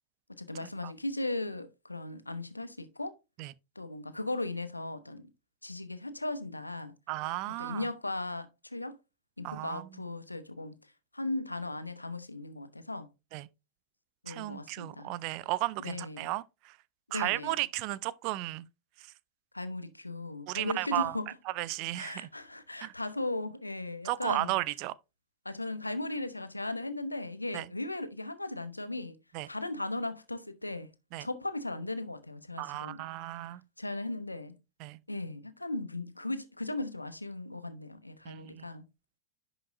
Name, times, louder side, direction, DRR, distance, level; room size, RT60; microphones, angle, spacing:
voice 1, 0.4-3.1 3.7-5.3 5.6-6.9 7.6-9.0 9.4-13.1 14.2-15.1 15.8-16.3 17.1-17.5 19.5-21.3 22.0-24.6 25.4-29.2 29.5-30.9 31.2-33.0 33.8-34.6 35.1-38.8, left 2 dB, 85° left, 0.9 m, -37 dB
voice 2, 7.1-7.9 9.4-10.0 13.3-13.5 14.3-16.8 17.1-18.7 19.0-19.1 20.5-21.2 21.5-22.3 22.8-22.9 24.0-24.9 27.5-27.7 29.3-29.5 31.1-31.3 32.6-33.6 34.8-35.0 38.2-38.7, right 18 dB, 45° right, 0.4 m, -34 dB
10.5 x 6.0 x 2.6 m
figure-of-eight pair, 90°, 0 cm